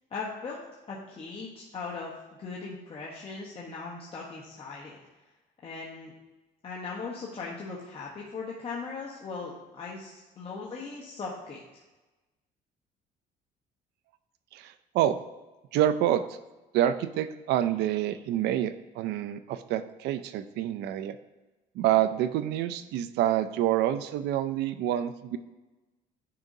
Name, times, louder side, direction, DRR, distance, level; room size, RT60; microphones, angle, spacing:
voice 1, 0.1-2.1 2.4-5.0 5.6-6.1 6.6-11.6, left 4 dB, 35° left, -4 dB, 1.0 m, -39 dB
voice 2, 14.5-15.2 15.7-16.2 16.7-21.2 21.8-25.4, right 12 dB, 80° right, 12 dB, 0.4 m, -27 dB
9.5 x 5.0 x 2.7 m, 1.1 s
cardioid pair, 110°, 17 cm